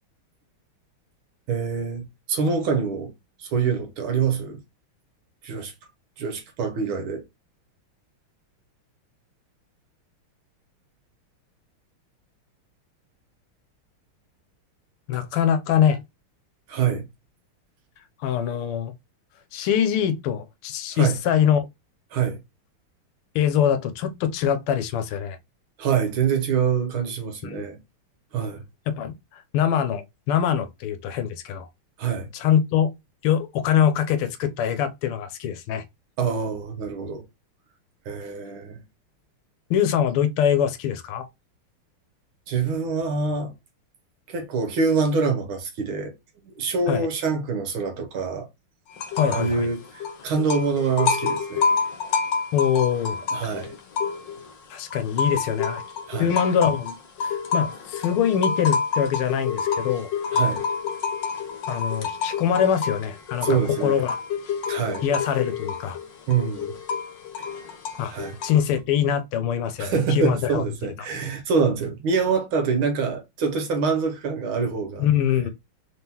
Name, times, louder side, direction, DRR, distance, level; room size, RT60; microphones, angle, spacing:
voice 1, 1.5-3.1 3.4-4.6 5.4-5.7 6.2-7.2 16.7-17.0 20.9-21.2 22.1-22.4 25.8-27.8 28.3-28.6 32.0-32.3 36.2-37.2 38.1-38.8 42.5-43.5 44.3-46.1 46.5-48.5 49.2-51.6 53.3-53.8 56.1-56.3 60.3-60.6 63.4-64.0 64.7-65.1 66.3-66.7 68.1-68.4 69.8-75.1, right 5 dB, 70° right, 1.7 m, -25 dB
voice 2, 15.1-16.0 18.2-18.9 19.5-21.7 23.3-25.4 27.4-27.7 28.9-31.7 32.3-32.9 33.2-35.8 39.7-41.3 46.9-47.1 49.2-49.7 52.5-53.2 54.7-55.8 56.2-60.1 61.7-64.2 65.0-66.0 68.0-68.1 68.4-70.6 75.0-75.5, left 9 dB, 90° left, 1.5 m, -23 dB
sound 1, 49.0-49.6 49.9-54.5 54.9-68.7, left 5 dB, 60° left, 1.5 m, -28 dB
3.9 x 3.6 x 2.9 m
omnidirectional pair, 2.4 m